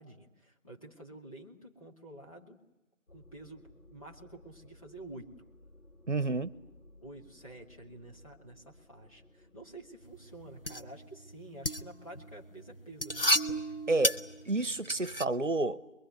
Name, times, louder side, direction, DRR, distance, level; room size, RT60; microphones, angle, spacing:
voice 1, 0.0-2.6 3.1-5.3 7.0-13.3, right 2 dB, 25° left, 2.6 m, -50 dB
sound 1, 3.1-10.9, left 1 dB, 90° left, 6.1 m, -59 dB
voice 2, 6.1-6.5 13.9-14.2 14.4-15.8, right 2 dB, 60° right, 1.1 m, -29 dB
sound 2, 10.0-15.2, equal, 45° left, 1.0 m, -33 dB
24.5 x 23.0 x 9.4 m
figure-of-eight pair, 175°, 41 cm